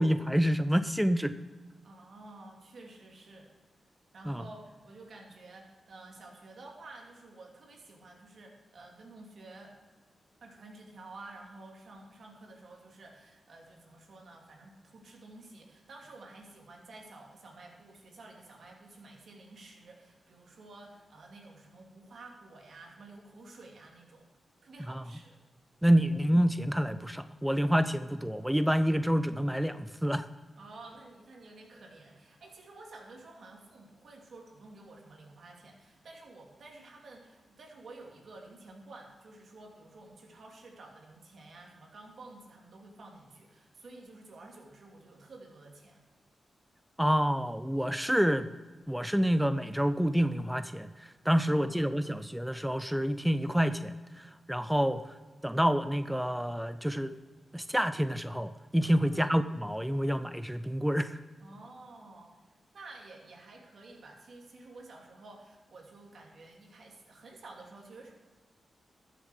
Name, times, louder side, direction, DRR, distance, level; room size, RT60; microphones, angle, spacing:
voice 1, 0.0-1.4 4.3-4.4 24.9-25.0 25.8-30.3 47.0-48.5 48.9-55.0 55.4-57.1 57.5-61.2, equal, 5° right, 12 dB, 0.5 m, -28 dB
voice 2, 1.8-3.5 4.1-9.7 10.4-24.3 24.6-25.4 30.6-46.0 51.4-52.0 59.0-59.3 61.4-62.4 62.7-68.1, right 2 dB, 70° right, 0 dB, 2.7 m, -51 dB
13.5 x 7.4 x 4.8 m, 1.4 s
cardioid pair, 60°, 0 cm